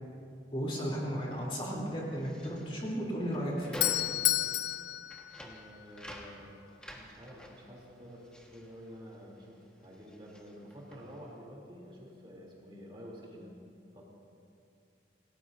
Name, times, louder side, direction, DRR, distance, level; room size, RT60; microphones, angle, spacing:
voice 1, 0.5-3.8, equal, 30° left, -4 dB, 3.4 m, -34 dB
sound 1, 2.1-9.6 9.8-11.3, equal, 5° left, 1.5 m, -49 dB
Doorbell, 3.4-6.2, left 15 dB, 65° left, 0.4 m, -32 dB
voice 2, 5.3-6.5 6.9-13.5 13.9-14.1, equal, 30° right, -4 dB, 3.3 m, -49 dB
27.0 x 18.0 x 2.7 m, 2.5 s
head